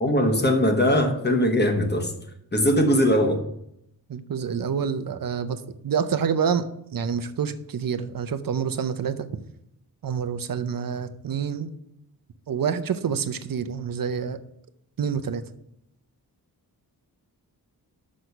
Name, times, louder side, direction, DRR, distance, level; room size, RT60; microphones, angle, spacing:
voice 1, 0.0-2.1 2.5-3.4, equal, 25° left, 4 dB, 1.1 m, -20 dB
voice 2, 4.1-6.6 6.9-9.4 10.0-11.7 12.5-14.4 15.0-15.4, right 7 dB, 60° right, 11 dB, 0.7 m, -27 dB
6.3 x 6.2 x 6.8 m, 0.80 s
wide cardioid pair, 150°, 37 cm